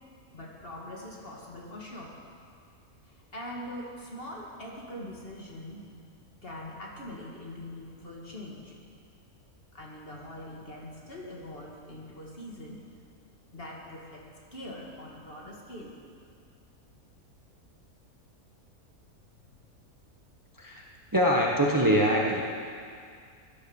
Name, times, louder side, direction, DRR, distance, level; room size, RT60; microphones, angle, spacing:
voice 1, 0.3-2.2 3.0-5.9 6.4-8.8 9.7-12.8 13.5-14.2 14.5-16.0 19.4-19.5, left 1 dB, 40° left, -2 dB, 2.3 m, -42 dB
voice 2, 21.1-22.4, equal, 15° right, -2 dB, 1.4 m, -23 dB
16.5 x 11.0 x 7.2 m, 2.2 s
omnidirectional pair, 1.6 m